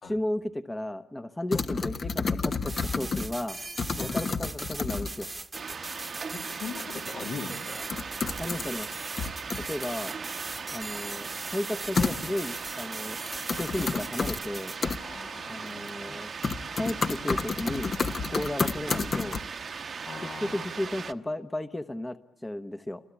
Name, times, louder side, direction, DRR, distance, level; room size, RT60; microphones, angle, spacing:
voice 1, 0.0-3.6 4.0-5.3 8.4-8.9 9.6-10.1 10.7-13.2 13.5-14.7 15.5-16.3 16.7-17.9 18.3-19.4 20.4-23.0, left 1 dB, 15° left, 10 dB, 1.0 m, -34 dB
sound 1, 1.5-3.4 3.8-5.3 6.8-6.9 7.2-7.3 7.9-8.9 9.2-10.0 12.0-12.6 13.2-14.4 14.8-15.0 15.7-16.1 16.4-19.4, left 4 dB, 50° left, 1.2 m, -30 dB
sound 2, 2.7-14.8, right 3 dB, 25° right, 1.1 m, -40 dB
sound 3, 5.5-21.1, right 5 dB, 55° right, 1.0 m, -39 dB
voice 2, 6.3-7.8 15.0-16.0 18.3-18.5 20.1-20.7, left 5 dB, 70° left, 3 dB, 2.3 m, -40 dB
28.0 x 23.5 x 8.5 m, 0.79 s
cardioid pair, 65°, 0 cm